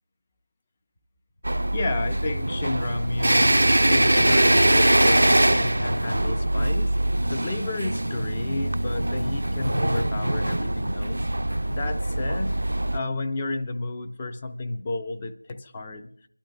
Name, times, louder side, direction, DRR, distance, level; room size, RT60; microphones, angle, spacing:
sound 1, 1.4-13.0, right 1 dB, 80° right, 0.4 m, -22 dB
voice 1, 1.7-7.0 7.3-11.3 11.7-12.6 12.9-16.1, left 2 dB, 15° left, 6 dB, 0.5 m, -31 dB
25.5 x 11.5 x 2.2 m, 0.62 s
figure-of-eight pair, 175°, 0 cm